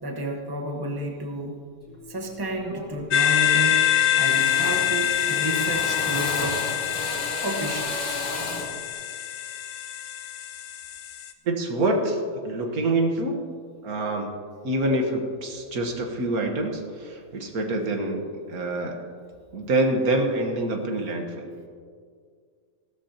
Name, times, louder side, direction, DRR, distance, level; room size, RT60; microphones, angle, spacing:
voice 1, 0.0-1.6 2.1-6.7 7.4-8.3, right 1 dB, 15° right, 2 dB, 1.2 m, -31 dB
Drill, 1.9-2.1 2.5-3.0 3.3-3.8 4.2-8.8, left 1 dB, 65° left, 2.9 m, -34 dB
sound 1, 3.1-11.3, left 10 dB, 80° left, 1.3 m, -25 dB
voice 2, 11.5-13.4 13.8-14.3 14.6-18.2 18.5-19.0 19.5-21.5, right 2 dB, 75° right, 3 dB, 1.7 m, -26 dB
16.0 x 13.0 x 2.9 m, 2.1 s
omnidirectional pair, 1.6 m